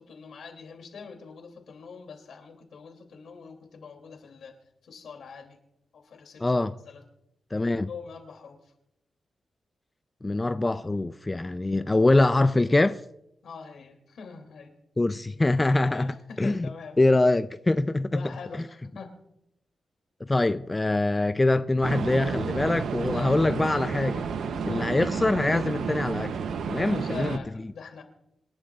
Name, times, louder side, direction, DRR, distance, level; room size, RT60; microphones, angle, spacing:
voice 1, 0.0-4.5 4.8-5.6 5.9-6.5 6.9-7.0 7.9-8.6 13.4-14.7 15.9-17.0 18.1-19.1 23.1-23.4 24.6-25.0 26.7-28.0, left 5 dB, 80° left, 2.9 m, -43 dB
voice 2, 6.4-6.7 7.5-7.9 10.2-13.0 15.0-16.7 17.0-18.3 20.2-24.2 24.6-26.3 26.7-27.4, left 2 dB, 20° left, 0.4 m, -24 dB
sound 1, 21.8-27.4, right 6 dB, 90° right, 0.8 m, -31 dB
27.0 x 11.0 x 2.5 m
cardioid pair, 100°, 0 cm